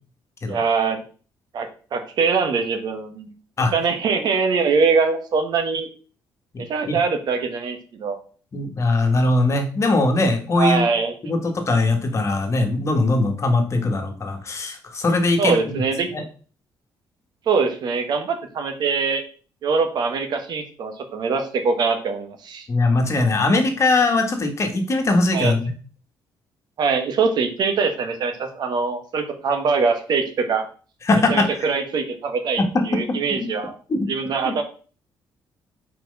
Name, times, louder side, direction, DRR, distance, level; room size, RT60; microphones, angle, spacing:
voice 1, 0.4-1.0 1.5-3.3 3.7-5.9 6.6-8.2 10.5-11.1 15.4-16.1 17.5-19.2 19.6-22.7 25.3-25.5 26.8-30.6 31.3-33.7 34.1-34.6, right 5 dB, 60° right, 6 dB, 1.4 m, -23 dB
voice 2, 8.5-10.9 11.2-15.8 16.1-16.2 22.7-25.6 31.0-31.5 32.6-32.7 33.9-34.1 34.4-34.5, left 2 dB, 40° left, 4 dB, 1.6 m, -20 dB
4.6 x 4.5 x 5.4 m, 0.40 s
cardioid pair, 95°, 8 cm